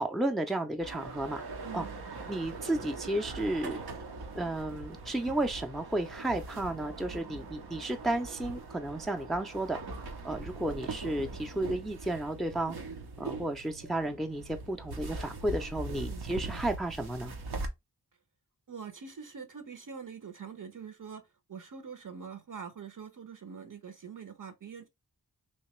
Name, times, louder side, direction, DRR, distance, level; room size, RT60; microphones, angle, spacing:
voice 1, 0.0-1.4 1.7-1.8 2.3-3.8 4.3-9.8 10.2-12.8 13.2-17.3, right 1 dB, ahead, 0.5 m, -33 dB
sound 1, 0.8-17.7, right 3 dB, 75° right, 0.9 m, -41 dB
voice 2, 1.6-2.0 16.0-16.3 18.7-24.9, right 6 dB, 55° right, 0.9 m, -44 dB
3.2 x 2.8 x 3.0 m
cardioid pair, 50°, 39 cm